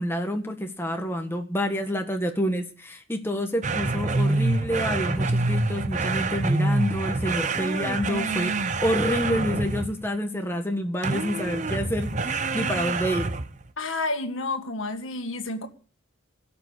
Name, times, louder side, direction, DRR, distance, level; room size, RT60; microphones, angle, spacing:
voice 1, 0.0-8.5 8.8-13.3, equal, 10° left, 4 dB, 1.6 m, -28 dB
sound 1, 3.6-10.1 11.0-13.6, right 3 dB, 35° right, 0.9 m, -26 dB
voice 2, 13.8-15.7, left 2 dB, 70° left, 7 dB, 1.9 m, -30 dB
17.5 x 7.0 x 9.8 m, 0.40 s
head